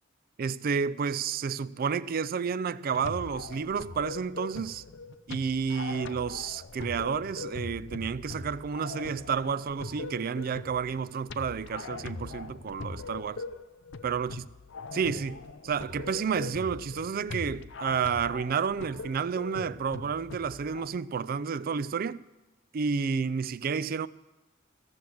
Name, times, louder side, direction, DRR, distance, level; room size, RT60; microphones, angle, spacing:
voice 1, 0.4-4.8 5.3-13.4 14.0-14.5 14.9-22.2 22.7-24.1, right 6 dB, 45° right, 0.4 m, -30 dB
sound 1, 2.9-20.9, left 3 dB, 65° left, 0.6 m, -41 dB
15.0 x 7.1 x 7.7 m
head